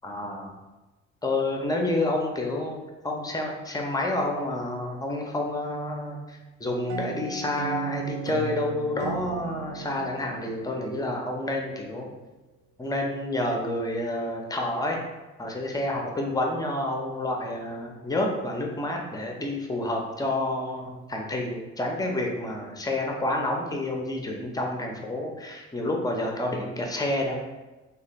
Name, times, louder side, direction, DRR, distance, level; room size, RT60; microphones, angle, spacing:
voice 1, 0.0-0.6 1.2-12.1 12.8-15.0 15.4-27.4, left 1 dB, 10° left, 0 dB, 0.6 m, -29 dB
sound 1, 6.9-11.5, right 6 dB, 45° right, 0.4 m, -35 dB
3.1 x 2.2 x 2.9 m, 1.1 s
figure-of-eight pair, 45°, 36 cm